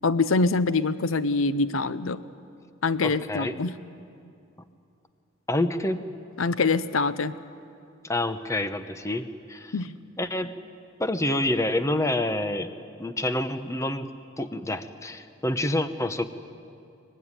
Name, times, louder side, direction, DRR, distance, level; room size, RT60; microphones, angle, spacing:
voice 1, 0.0-2.2 2.8-3.7 6.4-7.4 9.7-9.9, left 3 dB, 85° left, 14 dB, 0.7 m, -24 dB
voice 2, 3.0-3.5 5.5-6.0 8.0-9.7 10.2-10.6 11.0-12.7 13.0-14.1 14.4-16.2, left 1 dB, 15° left, 10 dB, 0.9 m, -27 dB
23.5 x 20.0 x 9.8 m, 2.5 s
head